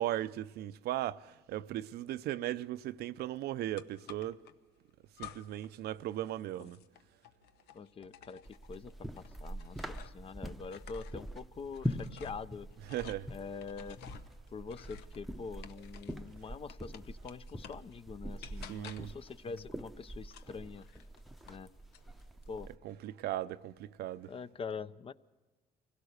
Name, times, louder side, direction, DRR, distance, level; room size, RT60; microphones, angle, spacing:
voice 1, 0.0-4.4 5.2-6.8 12.9-13.3 18.7-19.1 22.8-24.3, right 13 dB, 70° right, 0.6 m, -37 dB
sound 1, 3.8-4.5 5.1-5.7 6.0-10.3 10.6-16.3 16.7-17.9 18.4-19.2 20.2-21.6 21.9-22.5, left 9 dB, 75° left, 0.8 m, -53 dB
voice 2, 7.7-12.7 13.3-14.0 14.5-20.9 21.5-21.7 22.5-22.7 24.3-25.1, left 5 dB, 35° left, 0.6 m, -44 dB
sound 2, 8.4-22.8, equal, ahead, 0.7 m, -44 dB
24.5 x 17.0 x 6.5 m
cardioid pair, 110°, 17 cm